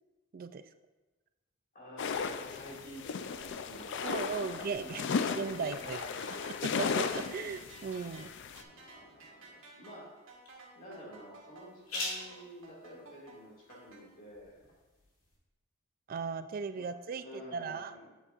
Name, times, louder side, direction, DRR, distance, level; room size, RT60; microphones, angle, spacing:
voice 1, 1.7-6.7 8.5-10.1 10.7-14.6 16.8-16.9 17.1-18.1, equal, 40° left, -4 dB, 2.1 m, -50 dB
sound 1, 2.0-8.6, left 5 dB, 60° left, 0.4 m, -36 dB
voice 2, 4.0-5.1 5.4-6.0 6.6-8.3 16.1-17.9, right 5 dB, 45° right, 12 dB, 0.3 m, -37 dB
sound 2, 5.4-14.0, right 3 dB, 70° right, 1.7 m, -54 dB
sound 3, 7.9-15.4, left 2 dB, 90° left, 2.4 m, -47 dB
8.4 x 7.9 x 2.5 m, 1.2 s
head